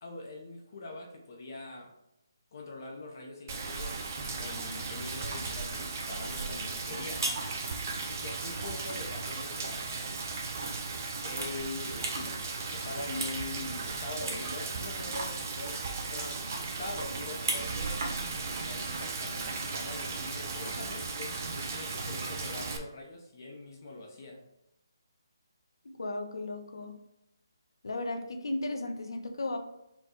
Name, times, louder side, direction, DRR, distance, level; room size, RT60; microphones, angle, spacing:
voice 1, 0.0-1.9 2.5-7.3 8.1-10.1 11.2-15.8 16.1-16.4 16.8-18.0 18.6-24.4, left 2 dB, 45° left, 1 dB, 0.7 m, -43 dB
Rain, 3.5-22.8, right 4 dB, 35° right, 0.5 m, -36 dB
sound 1, 5.3-8.1 8.5-9.0 10.6-10.7 11.1-12.3 12.6-13.4 13.6-13.7 14.3-14.4 14.7-17.7 18.0-18.4 19.7-20.1, right 2 dB, 55° right, 1.2 m, -38 dB
voice 2, 25.8-27.0 27.8-29.6, left 2 dB, 80° left, 6 dB, 0.7 m, -35 dB
4.5 x 2.2 x 4.4 m, 0.88 s
hypercardioid pair, 165°, 2 cm